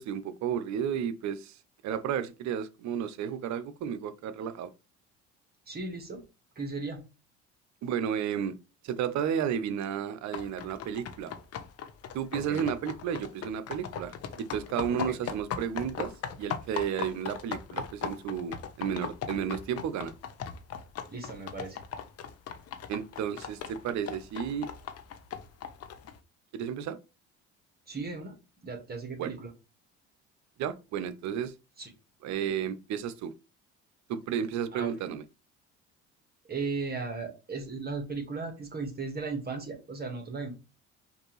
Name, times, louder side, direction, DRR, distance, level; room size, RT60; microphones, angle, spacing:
voice 1, 0.0-1.6 1.8-4.7 7.8-8.6 8.8-11.3 12.1-16.1 16.4-20.1 22.9-24.7 26.5-27.0 29.2-29.4 30.6-31.5 32.2-33.3 34.1-35.2, right 8 dB, 60° right, 0.7 m, -32 dB
voice 2, 5.7-6.2 6.5-7.0 12.3-12.7 14.9-15.1 21.1-21.8 27.9-28.3 28.6-29.5 31.8-31.9 34.7-34.9 36.5-40.5, right 4 dB, 30° right, 1.6 m, -36 dB
sound 1, 10.3-26.2, left 7 dB, 50° left, 0.8 m, -39 dB
5.1 x 2.7 x 3.1 m
supercardioid pair, 75°, 31 cm